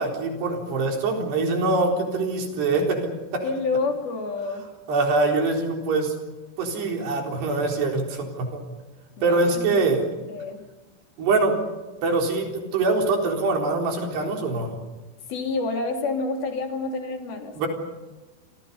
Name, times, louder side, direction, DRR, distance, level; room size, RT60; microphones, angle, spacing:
voice 1, 0.0-3.4 4.9-6.2 6.6-8.6 9.2-10.0 11.2-11.6 12.0-14.7 17.6-17.7, right 3 dB, 75° right, 2 dB, 6.1 m, -24 dB
voice 2, 3.4-4.6 9.2-9.8 10.3-10.6 15.3-17.6, left 3 dB, 65° left, 3 dB, 4.7 m, -28 dB
29.5 x 27.5 x 5.5 m, 1.1 s
omnidirectional pair, 4.8 m